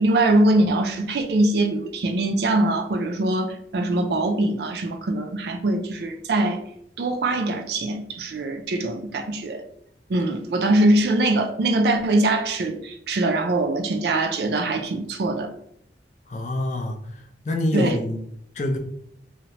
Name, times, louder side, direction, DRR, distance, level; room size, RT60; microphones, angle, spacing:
voice 1, 0.0-6.6 7.0-9.6 10.1-15.5 17.7-18.0, right 2 dB, 65° right, 5 dB, 0.4 m, -22 dB
voice 2, 16.3-17.0 17.4-18.2 18.5-18.8, left 1 dB, 40° left, 2 dB, 0.4 m, -25 dB
2.7 x 2.1 x 2.9 m, 0.71 s
head